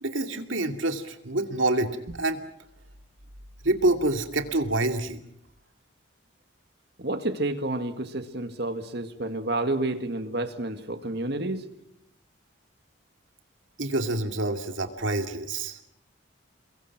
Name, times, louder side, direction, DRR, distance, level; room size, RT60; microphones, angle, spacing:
voice 1, 0.0-2.4 3.6-5.2 13.8-15.8, right 2 dB, 75° right, 2.5 m, -27 dB
voice 2, 7.0-11.7, right 2 dB, 55° right, 2.0 m, -30 dB
29.5 x 22.5 x 6.1 m
head